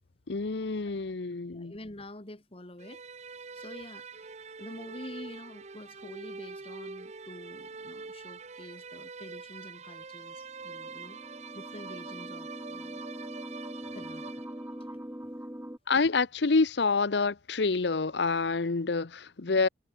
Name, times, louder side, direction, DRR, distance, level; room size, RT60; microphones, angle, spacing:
voice 1, 0.3-1.7 15.9-19.7, left 4 dB, 65° left, 0.8 m, -27 dB
voice 2, 1.5-3.0 3.5-13.1 13.9-14.4 14.8-15.3 19.6-19.7, left 1 dB, 30° left, 1.9 m, -47 dB
sound 1, 2.8-14.9, right 4 dB, 35° right, 0.8 m, -45 dB
sound 2, 10.5-15.8, equal, 10° right, 1.6 m, -42 dB
head